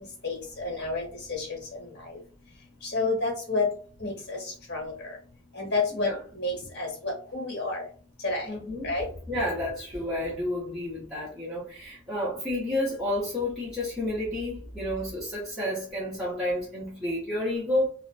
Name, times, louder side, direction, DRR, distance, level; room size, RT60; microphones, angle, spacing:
voice 1, 0.2-1.6 2.8-3.7 4.0-4.4 4.7-4.9 5.5-6.1 6.4-7.8 8.2-8.5 8.8-9.0, left 3 dB, 55° left, 1.1 m, -29 dB
voice 2, 8.5-17.9, left 1 dB, ahead, 0.8 m, -30 dB
2.4 x 2.1 x 2.4 m
head